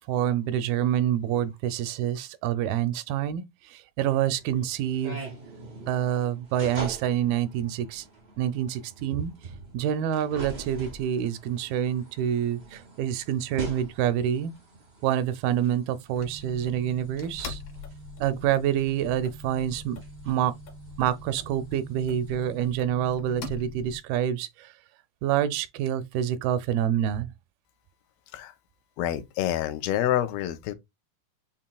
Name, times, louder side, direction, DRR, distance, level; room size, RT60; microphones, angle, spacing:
voice 1, 0.1-5.2 5.9-8.1 8.4-9.3 9.7-14.5 15.0-17.6 18.2-20.5 21.0-24.7 25.2-27.3, right 10 dB, 85° right, 2.4 m, -27 dB
sound 1, 4.0-22.7, right 3 dB, 70° right, 0.6 m, -44 dB
sound 2, 16.2-24.0, left 2 dB, 70° left, 1.8 m, -42 dB
voice 2, 29.0-30.7, left 12 dB, 85° left, 2.4 m, -27 dB
7.3 x 2.8 x 2.2 m
omnidirectional pair, 4.2 m